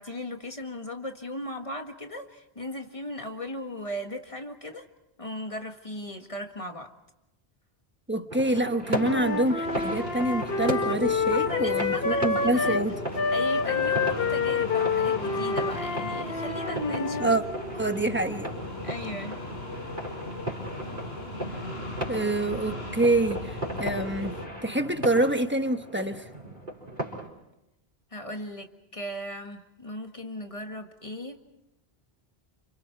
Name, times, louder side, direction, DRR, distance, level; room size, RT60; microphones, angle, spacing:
voice 1, 0.0-4.9 5.2-6.9 11.3-12.8 13.3-17.3 18.8-19.4 28.1-31.4, left 1 dB, 30° left, 1.8 m, -37 dB
voice 2, 8.1-13.0 17.2-17.4 17.8-18.5 22.1-24.4 24.6-26.2, right 1 dB, 10° right, 1.2 m, -26 dB
sound 1, 8.3-27.3, right 1 dB, 55° right, 5.3 m, -37 dB
Wind instrument woodwind instrument, 8.9-12.9 13.1-17.4, left 5 dB, 65° left, 1.2 m, -28 dB
sound 2, 9.6-24.5, left 1 dB, 80° left, 5.3 m, -38 dB
30.0 x 27.5 x 4.5 m
omnidirectional pair, 1.0 m